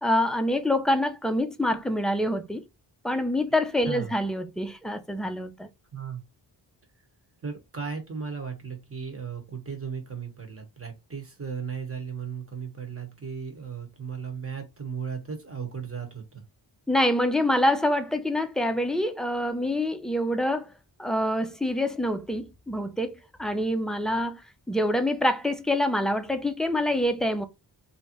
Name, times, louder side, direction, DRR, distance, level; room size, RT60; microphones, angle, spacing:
voice 1, 0.0-2.6 3.0-5.7 16.9-20.7 21.0-24.4 24.7-27.4, left 1 dB, ahead, 0.4 m, -26 dB
voice 2, 5.9-6.2 7.4-16.4, right 6 dB, 30° right, 1.2 m, -36 dB
3.2 x 2.7 x 2.9 m
wide cardioid pair, 120°, 45 cm